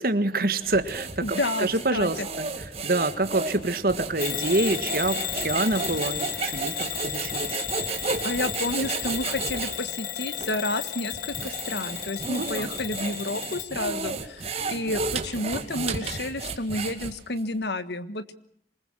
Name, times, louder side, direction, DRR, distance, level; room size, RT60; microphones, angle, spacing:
voice 1, 0.0-7.6 12.4-12.7 15.7-15.8, right 2 dB, 55° right, 11 dB, 1.6 m, -27 dB
sound 1, 0.6-9.8 10.4-10.5 11.1-17.4, right 4 dB, 35° right, 2.3 m, -33 dB
voice 2, 1.2-2.3 8.2-18.3, left 2 dB, 75° left, 12 dB, 1.5 m, -30 dB
Bell / Alarm, 4.2-13.7, left 9 dB, 50° left, 1.2 m, -34 dB
27.0 x 20.5 x 6.2 m, 0.69 s
head